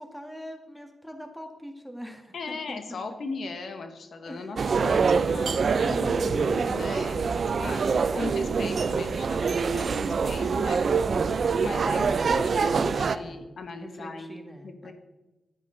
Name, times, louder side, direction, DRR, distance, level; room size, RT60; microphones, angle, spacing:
voice 1, 0.0-3.2 4.2-4.5 5.7-6.3 7.6-8.1 9.4-9.7 11.1-11.3 13.1-13.4 13.8-14.9, equal, 5° left, 4 dB, 1.6 m, -43 dB
voice 2, 2.3-10.8 11.6-14.4 14.6-14.9, left 4 dB, 70° left, 7 dB, 1.1 m, -38 dB
sound 1, 4.6-13.2, right 5 dB, 60° right, 0.5 m, -25 dB
10.5 x 10.0 x 3.9 m, 1.1 s
cardioid pair, 80°, 0 cm